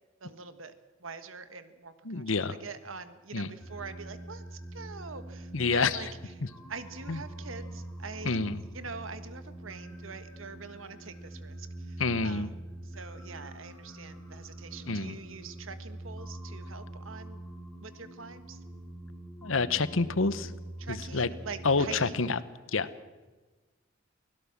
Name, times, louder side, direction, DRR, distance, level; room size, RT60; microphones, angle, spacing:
voice 1, 0.2-0.7 1.0-6.1 6.7-8.4 8.7-12.5 12.8-17.4 17.8-18.6 20.8-22.2, right 4 dB, 85° right, 11 dB, 1.6 m, -44 dB
voice 2, 2.0-2.6 3.3-3.5 5.5-6.1 7.1-7.2 8.2-8.6 12.0-12.5 14.9-15.2 19.4-20.5 20.9-21.3 21.6-22.4 22.7-22.9, left 4 dB, 80° left, 15 dB, 1.1 m, -28 dB
sound 1, 3.6-22.3, right 1 dB, 10° left, 3.1 m, -44 dB
24.0 x 17.0 x 7.4 m, 1.2 s
head